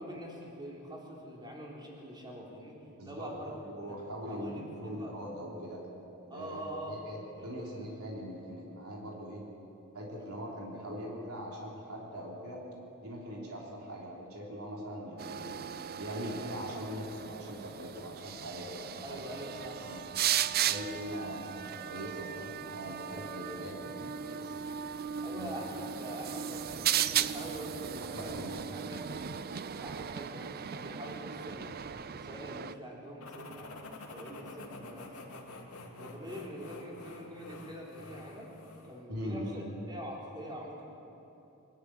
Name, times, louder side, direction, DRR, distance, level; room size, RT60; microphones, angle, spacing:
voice 1, 0.0-2.8 3.0-3.5 3.8-4.0 4.3-5.1 6.3-7.0 7.3-8.2 10.2-10.3 19.0-19.9 23.2-24.3 25.2-29.4 29.8-33.7 34.0-35.1 36.0-38.5 38.8-40.9, equal, 20° right, -3 dB, 3.8 m, -44 dB
voice 2, 3.0-5.9 6.3-9.5 9.9-12.6 13.0-15.5 16.0-19.2 19.8-20.2 20.6-24.6 25.2-25.6 28.0-28.7 39.1-39.6, equal, 75° right, -3 dB, 3.5 m, -41 dB
sound 1, 15.2-32.8, right 9 dB, 45° right, 0.5 m, -36 dB
sound 2, 33.2-39.0, left 2 dB, 90° left, 2.7 m, -48 dB
23.5 x 13.0 x 8.8 m, 2.9 s
head